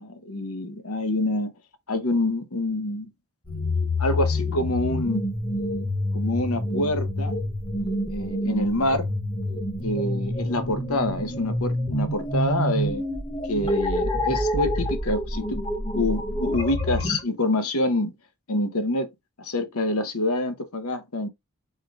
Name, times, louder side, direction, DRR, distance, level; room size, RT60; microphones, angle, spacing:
voice 1, 0.0-1.5 1.9-3.1 4.0-5.3 6.1-7.4 8.1-9.1 9.8-13.0 13.5-15.6 15.9-18.1 18.5-19.1 19.4-21.3, left 1 dB, 80° left, 1.0 m, -26 dB
sound 1, 3.5-17.2, left 1 dB, 20° left, 1.1 m, -27 dB
4.7 x 4.4 x 2.5 m
head